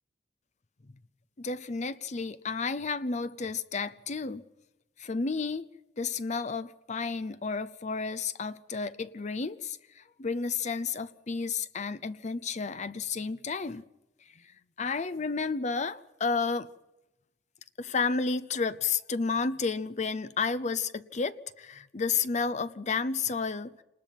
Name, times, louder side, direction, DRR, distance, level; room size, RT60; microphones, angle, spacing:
voice 1, 1.4-4.4 5.0-5.7 6.0-13.8 14.2-16.7 17.8-23.8, left 4 dB, 40° left, 0.7 m, -32 dB
27.5 x 20.0 x 5.9 m
head